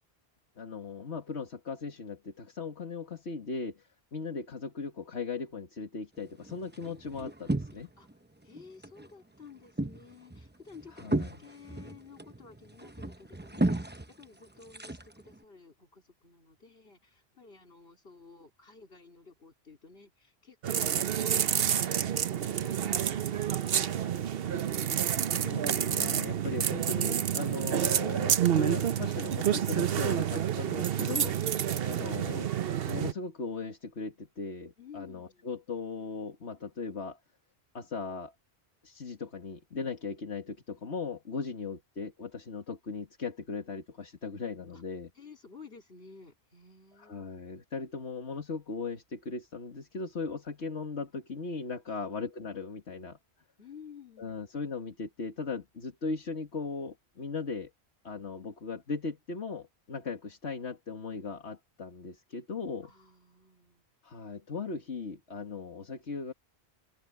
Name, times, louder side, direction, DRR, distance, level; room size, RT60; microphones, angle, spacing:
voice 1, 0.6-7.9 11.0-11.4 25.3-31.4 31.8-32.5 32.9-37.2 37.7-38.3 38.8-45.1 47.0-53.2 54.2-57.7 58.0-62.9 64.0-66.3, left 4 dB, 80° left, 2.1 m, -38 dB
sound 1, 6.2-8.1 8.4-9.1 9.4-15.4, right 1 dB, 10° right, 0.8 m, -35 dB
voice 2, 8.4-24.6 31.4-32.0 34.8-35.5 44.7-44.8 45.1-47.5 51.9-52.2 53.6-54.4 62.8-63.8, left 5 dB, 65° left, 3.6 m, -53 dB
sound 2, 20.6-33.1, right 9 dB, 65° right, 0.9 m, -29 dB
omnidirectional pair, 1.1 m